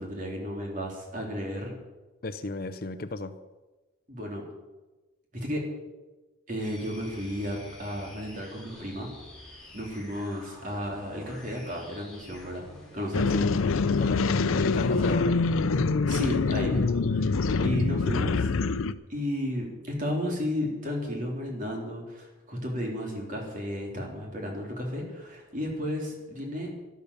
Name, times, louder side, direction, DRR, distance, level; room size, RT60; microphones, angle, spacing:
voice 1, 0.0-1.8 4.1-4.4 5.3-5.6 6.5-9.1 9.5-12.6 12.9-13.3 16.1-18.5 19.1-26.7, equal, 40° right, 0 dB, 3.6 m, -33 dB
voice 2, 2.2-3.3 13.3-13.7 14.0-15.4, left 2 dB, 45° left, 11 dB, 0.7 m, -34 dB
sound 1, 6.6-15.2, left 1 dB, 5° left, 3.8 m, -48 dB
sound 2, 13.1-18.9, left 4 dB, 85° left, 0.6 m, -25 dB
12.0 x 12.0 x 6.9 m, 1.1 s
head